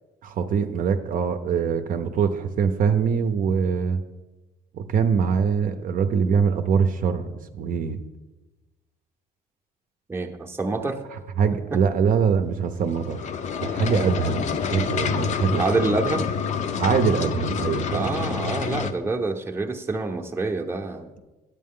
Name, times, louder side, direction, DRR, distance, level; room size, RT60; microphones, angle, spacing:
voice 1, 0.2-4.0 4.8-7.3 7.5-8.0 11.4-13.3 13.6-15.6 16.8-18.1, right 6 dB, 55° right, 7 dB, 0.6 m, -23 dB
voice 2, 10.1-11.0 11.7-11.8 15.6-16.3 17.9-21.1, right 3 dB, 15° right, 2 dB, 0.7 m, -27 dB
sound 1, 12.8-18.9, left 6 dB, 45° left, 0.5 m, -27 dB
9.4 x 8.2 x 3.7 m, 1.1 s
cardioid pair, 110°, 17 cm